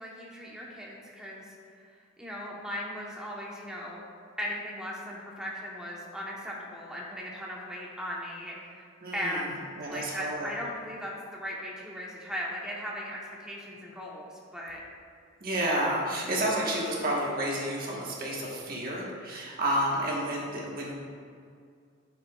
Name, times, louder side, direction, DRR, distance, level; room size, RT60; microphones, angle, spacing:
voice 1, 0.0-1.5 2.2-4.0 4.4-8.9 9.1-9.4 9.9-14.8 20.5-20.9, equal, 5° right, -4 dB, 1.0 m, -38 dB
voice 2, 9.0-9.4 9.8-10.5 15.4-20.9, right 1 dB, 50° right, -4 dB, 1.4 m, -30 dB
9.3 x 6.6 x 2.4 m, 2.2 s
head